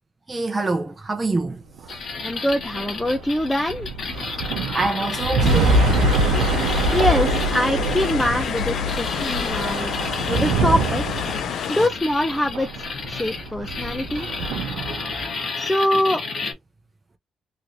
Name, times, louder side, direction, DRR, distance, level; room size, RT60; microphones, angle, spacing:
voice 1, 0.3-1.9 4.7-5.8 14.6-14.7, right 2 dB, 25° right, 0.7 m, -26 dB
sound 1, 1.8-15.4, right 2 dB, 85° right, 0.6 m, -24 dB
sound 2, 1.9-16.5, left 4 dB, 50° left, 1.3 m, -32 dB
voice 2, 2.2-3.9 6.9-9.9 10.3-11.0 11.7-14.3 15.6-16.2, left 1 dB, 10° left, 0.4 m, -23 dB
sound 3, 5.4-11.9, left 9 dB, 75° left, 0.4 m, -30 dB
3.1 x 2.8 x 2.5 m
cardioid pair, 90°, 0 cm